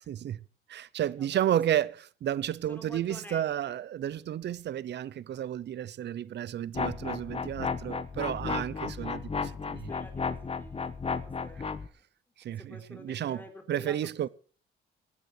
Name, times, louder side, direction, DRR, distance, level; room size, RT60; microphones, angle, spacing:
voice 1, 0.1-0.4 0.7-9.9 12.4-14.3, right 11 dB, 60° right, 0.8 m, -32 dB
voice 2, 2.7-3.8 9.9-11.9 12.6-14.0 14.2-14.3, left 1 dB, 10° left, 3.9 m, -49 dB
sound 1, 6.7-11.9, left 5 dB, 30° left, 1.3 m, -34 dB
17.0 x 9.9 x 6.3 m
cardioid pair, 90°, 20 cm